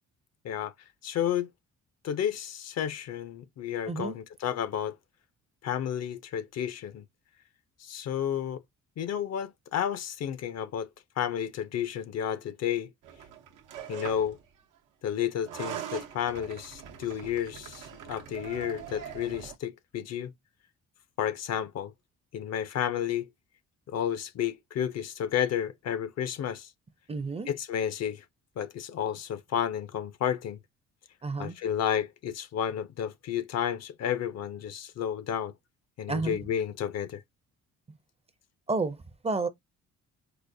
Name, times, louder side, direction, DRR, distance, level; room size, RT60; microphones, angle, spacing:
voice 1, 1.0-1.5 2.0-5.0 5.6-7.0 7.8-8.6 9.0-10.9 11.2-12.9 13.9-14.4 15.0-20.3 21.2-21.9 22.3-23.3 23.9-26.7 27.5-28.3 28.6-30.6 31.4-35.6 36.0-37.2, left 9 dB, 60° left, 0.5 m, -31 dB
sound 1, 13.0-14.4 15.3-19.5, right 9 dB, 90° right, 0.8 m, -42 dB
voice 2, 27.1-27.5 31.2-31.5 36.1-36.4 38.7-39.5, right 3 dB, 20° right, 0.5 m, -30 dB
4.9 x 2.0 x 2.6 m
cardioid pair, 90°, 30 cm